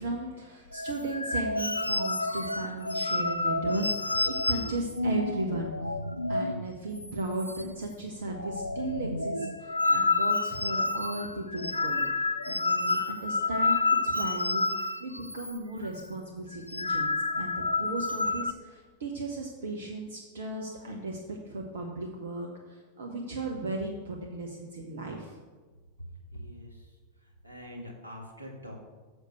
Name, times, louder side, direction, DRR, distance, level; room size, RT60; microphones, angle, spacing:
voice 1, 0.0-5.7 6.3-25.4, right 2 dB, 60° right, 1 dB, 1.0 m, -36 dB
sound 1, 0.7-6.7 7.0-7.1 7.4-7.9 8.2-15.6 15.8-16.1 16.5-18.5, left 3 dB, 85° left, 0.3 m, -29 dB
voice 2, 26.3-26.9 27.2-28.8, equal, 85° right, 0 dB, 1.7 m, -44 dB
6.6 x 6.4 x 6.6 m, 1.4 s
figure-of-eight pair, 90°, 0 cm